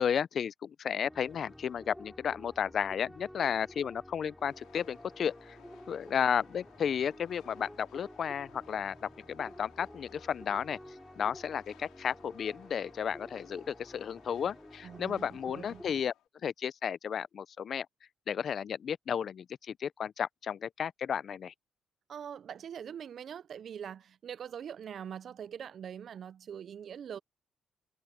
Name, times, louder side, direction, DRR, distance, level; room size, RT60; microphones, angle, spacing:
voice 1, 0.0-5.6 5.9-10.8 11.2-16.1 16.4-17.9 18.3-21.5, left 8 dB, 55° left, 0.5 m, -33 dB
sound 1, 1.0-16.0, equal, ahead, 5.0 m, -51 dB
Train, 4.4-16.3, left 13 dB, 90° left, 4.5 m, -60 dB
voice 2, 14.8-15.8 22.1-27.2, right 8 dB, 60° right, 0.5 m, -43 dB
cardioid pair, 90°, 0 cm